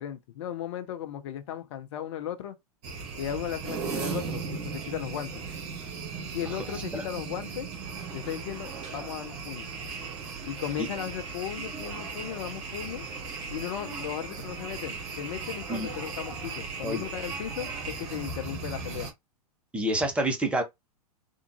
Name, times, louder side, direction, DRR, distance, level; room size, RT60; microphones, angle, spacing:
voice 1, 0.0-2.6 3.1-5.4 6.3-7.7 8.1-9.7 10.4-13.1 13.5-19.1, left 10 dB, 45° left, 0.6 m, -36 dB
sound 1, 2.8-19.1, right 5 dB, 45° right, 1.4 m, -37 dB
voice 2, 19.7-20.6, right 1 dB, 5° right, 0.8 m, -28 dB
3.5 x 2.5 x 2.8 m
figure-of-eight pair, 100°, 20 cm